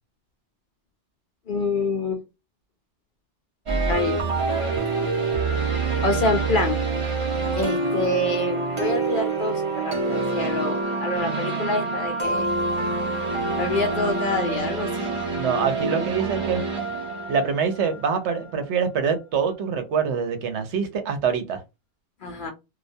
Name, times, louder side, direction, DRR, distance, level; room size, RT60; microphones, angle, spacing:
voice 1, 1.5-2.2 3.9-4.3 6.0-6.8 7.6-12.5 13.6-15.1 22.2-22.5, left 2 dB, 55° left, 3 dB, 0.6 m, -26 dB
sound 1, 3.7-18.5, right 3 dB, 35° right, 0.5 m, -26 dB
voice 2, 15.4-16.6 17.3-21.6, right 6 dB, 75° right, 7 dB, 0.9 m, -25 dB
2.3 x 2.2 x 2.6 m, 0.25 s
omnidirectional pair, 1.2 m